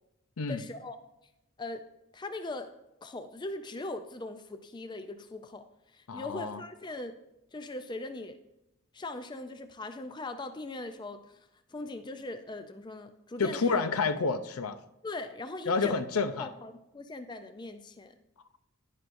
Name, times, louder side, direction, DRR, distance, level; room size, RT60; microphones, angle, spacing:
voice 1, 0.5-1.0 1.6-1.9 2.1-2.7 3.0-5.7 5.9-7.1 7.5-8.4 8.9-13.8 15.0-16.0 16.4-18.1, left 2 dB, 20° left, 8 dB, 0.4 m, -40 dB
voice 2, 6.1-6.6 13.4-14.8 15.7-16.5, left 4 dB, 75° left, 10 dB, 0.6 m, -29 dB
11.0 x 10.5 x 2.6 m, 0.90 s
head